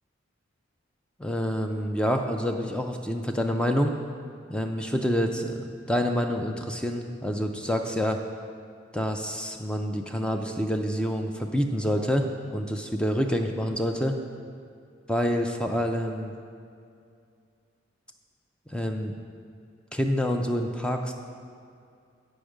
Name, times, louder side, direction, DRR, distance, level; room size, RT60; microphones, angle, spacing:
voice 1, 1.2-3.9 4.5-8.2 8.9-14.2 15.1-16.3 18.7-19.1 19.9-21.1, equal, 5° left, 4 dB, 0.4 m, -27 dB
9.1 x 5.2 x 4.9 m, 2.4 s
head